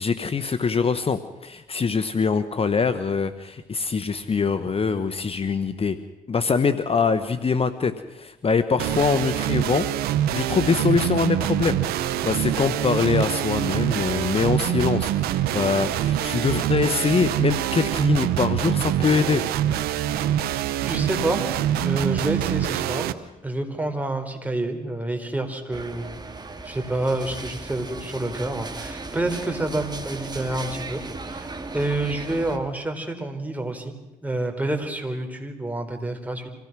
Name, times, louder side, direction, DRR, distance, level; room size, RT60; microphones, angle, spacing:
voice 1, 0.0-6.0 6.3-9.9 10.3-19.4, left 5 dB, 40° left, 12 dB, 1.1 m, -23 dB
sound 1, 8.8-23.1, right 11 dB, 90° right, 0.9 m, -25 dB
voice 2, 20.9-21.4 21.8-23.1 23.4-26.2 26.6-34.0 34.2-36.5, right 2 dB, 10° right, 4 dB, 4.2 m, -28 dB
sound 2, 25.7-32.6, right 3 dB, 25° right, 2.3 m, -36 dB
25.5 x 17.0 x 6.1 m, 1.0 s
supercardioid pair, 65°, 16 cm